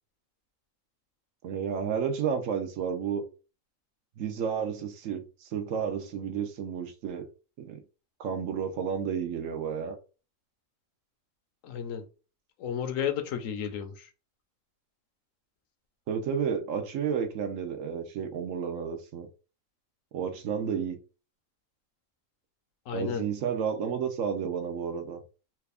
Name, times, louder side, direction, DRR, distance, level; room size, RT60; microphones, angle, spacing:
voice 1, 1.4-3.2 4.2-7.3 7.6-7.8 8.2-10.0 16.1-19.3 20.1-21.0 22.9-25.2, right 7 dB, 80° right, 1.1 m, -31 dB
voice 2, 11.6-12.0 12.6-14.1 22.9-23.2, left 8 dB, 80° left, 1.1 m, -32 dB
3.3 x 2.4 x 3.4 m
omnidirectional pair, 1.4 m